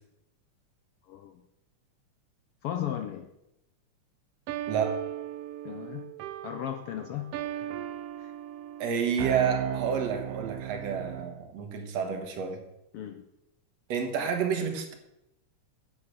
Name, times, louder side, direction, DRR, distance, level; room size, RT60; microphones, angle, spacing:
voice 1, 1.1-1.4 2.6-3.3 5.6-6.1 6.4-7.7 8.2-8.3 12.9-13.3, left 10 dB, 80° left, 8 dB, 1.3 m, -36 dB
sound 1, 4.5-11.4, right 12 dB, 85° right, 1.3 m, -36 dB
voice 2, 8.8-12.6 13.9-14.9, right 6 dB, 65° right, 5 dB, 2.5 m, -30 dB
9.9 x 8.8 x 6.3 m, 0.85 s
omnidirectional pair, 3.3 m